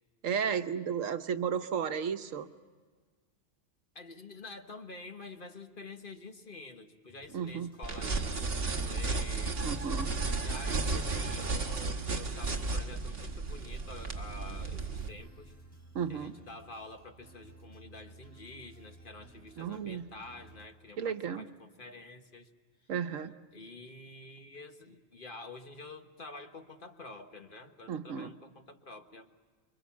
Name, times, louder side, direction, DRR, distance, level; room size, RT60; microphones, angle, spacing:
voice 1, 0.2-2.5 7.3-7.7 9.6-10.1 15.9-16.3 19.6-20.1 21.0-21.5 22.9-23.3 27.9-28.3, right 7 dB, 80° right, 9 dB, 1.3 m, -33 dB
voice 2, 3.9-9.7 10.3-15.5 16.1-22.5 23.5-29.3, left 3 dB, 45° left, 5 dB, 1.5 m, -48 dB
sound 1, 7.1-20.7, right 1 dB, 10° right, 3.3 m, -57 dB
sound 2, 7.8-15.1, right 3 dB, 50° right, 1.6 m, -33 dB
26.5 x 23.5 x 7.2 m, 1.5 s
omnidirectional pair, 1.3 m